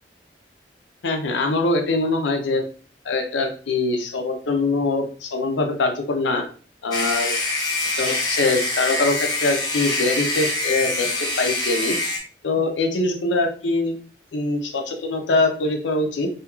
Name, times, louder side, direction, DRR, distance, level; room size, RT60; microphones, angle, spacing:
voice 1, 1.0-2.6 3.0-6.4 6.8-7.4 8.0-11.1 11.4-12.0 12.4-13.9 14.3-16.3, left 2 dB, 90° left, 4 dB, 0.6 m, -23 dB
sound 1, 6.9-12.2, left 2 dB, 25° left, 0.7 m, -25 dB
2.9 x 2.7 x 2.3 m, 0.40 s
head